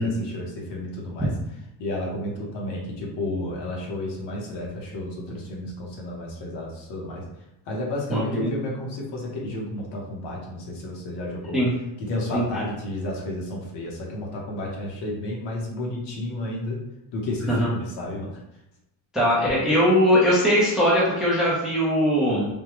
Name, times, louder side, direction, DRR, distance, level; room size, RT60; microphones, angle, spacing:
voice 1, 0.0-1.3 1.8-7.3 7.7-11.6 12.0-16.8 17.1-18.4, left 1 dB, 65° left, -2 dB, 1.0 m, -32 dB
voice 2, 8.1-8.5 11.5-11.7 12.3-12.4 17.5-17.7 19.1-22.5, equal, ahead, -7 dB, 0.6 m, -20 dB
3.5 x 2.2 x 3.0 m, 0.90 s
cardioid pair, 175°, 44 cm